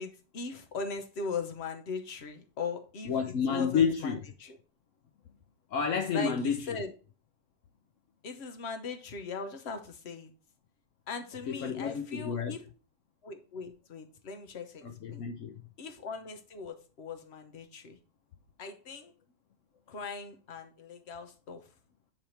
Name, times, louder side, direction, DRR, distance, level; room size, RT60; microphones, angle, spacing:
voice 1, 0.0-3.1 3.5-4.6 6.1-6.9 8.2-10.3 11.1-12.6 13.2-15.3 15.8-18.0 18.6-19.1 19.9-21.7, left 4 dB, 45° left, 0.9 m, -39 dB
voice 2, 3.1-4.2 5.7-6.8 11.5-12.6 14.8-15.6, left 6 dB, 65° left, 0.7 m, -30 dB
8.8 x 3.5 x 4.3 m
omnidirectional pair, 2.1 m